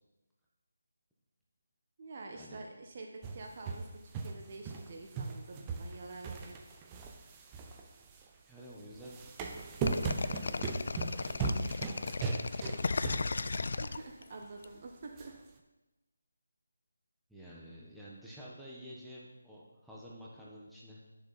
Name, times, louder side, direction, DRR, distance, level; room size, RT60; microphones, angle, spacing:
voice 1, 2.0-6.6 13.5-15.3, right 3 dB, 40° right, 2 dB, 1.1 m, -47 dB
sound 1, 3.2-4.9 5.1-8.3 8.9-13.7 14.0-14.1 15.2-15.3, right 4 dB, 20° right, 0.7 m, -38 dB
voice 2, 8.5-9.2 10.2-13.5 17.3-21.0, equal, ahead, -8 dB, 1.3 m, -51 dB
sound 2, 9.9-14.6, left 3 dB, 55° left, 0.4 m, -35 dB
10.0 x 6.8 x 4.1 m, 1.1 s
figure-of-eight pair, 155°, 0 cm